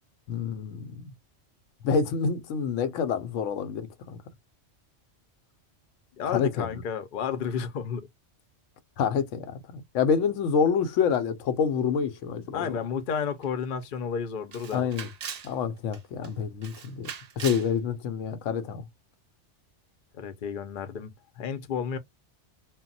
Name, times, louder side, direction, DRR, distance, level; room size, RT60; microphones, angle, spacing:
voice 1, 0.3-1.1 1.8-4.2 6.3-6.7 9.0-12.8 14.7-15.1 15.4-17.1 17.4-18.8, left 6 dB, 85° left, 0.9 m, -27 dB
voice 2, 6.2-8.1 12.5-14.8 20.1-22.0, left 7 dB, 55° left, 0.6 m, -32 dB
Camera, 13.4-13.5 13.8-13.9 14.5-15.5 15.9-16.3 16.6-17.7, right 7 dB, 65° right, 0.4 m, -39 dB
2.2 x 2.1 x 3.8 m
omnidirectional pair, 1.3 m